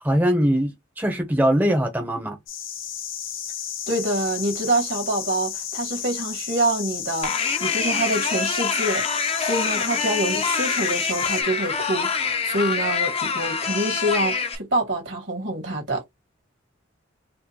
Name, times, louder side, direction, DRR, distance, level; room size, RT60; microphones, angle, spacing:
voice 1, 0.0-2.4, equal, 10° right, 0.7 m, -21 dB
sound 1, 2.5-11.4, left 9 dB, 85° left, 0.9 m, -33 dB
voice 2, 3.9-9.1 9.4-16.0, right 1 dB, 70° right, 1.8 m, -26 dB
sound 2, 7.2-14.5, left 5 dB, 30° left, 0.6 m, -25 dB
4.4 x 2.4 x 2.8 m
head